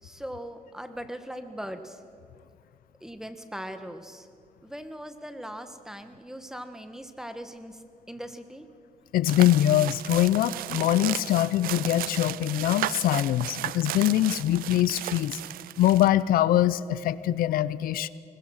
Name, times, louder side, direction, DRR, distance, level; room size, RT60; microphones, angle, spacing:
voice 1, 0.0-2.0 3.0-4.3 4.6-8.7, equal, 5° right, 8 dB, 1.4 m, -40 dB
voice 2, 9.1-15.4 15.8-18.1, left 13 dB, 85° left, 17 dB, 0.5 m, -23 dB
sound 1, 9.3-16.1, right 15 dB, 85° right, 0.4 m, -35 dB
21.0 x 20.5 x 6.5 m, 2.3 s
cardioid pair, 110°, 14 cm